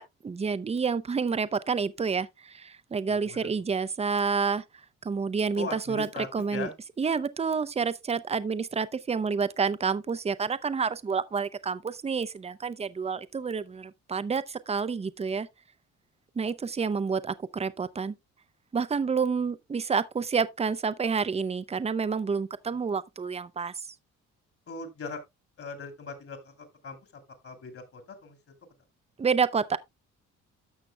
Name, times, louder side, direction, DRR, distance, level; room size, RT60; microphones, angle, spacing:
voice 1, 0.0-4.6 5.0-6.1 6.3-6.7 7.0-15.5 16.4-18.2 18.7-23.7 29.2-29.8, right 5 dB, 20° right, 0.6 m, -29 dB
voice 2, 3.1-3.4 5.6-6.7 24.7-25.2 25.6-28.4, left 4 dB, 50° left, 2.6 m, -40 dB
13.5 x 5.9 x 2.2 m
cardioid pair, 90°, 30 cm